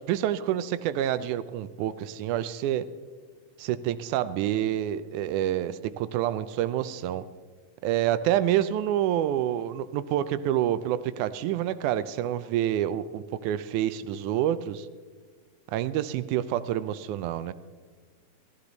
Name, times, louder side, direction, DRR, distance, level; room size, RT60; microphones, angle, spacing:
voice 1, 0.1-2.9 3.6-7.2 7.8-14.9 15.7-17.5, right 11 dB, 80° right, 15 dB, 1.9 m, -27 dB
15.0 x 14.5 x 3.9 m, 1.5 s
omnidirectional pair, 3.7 m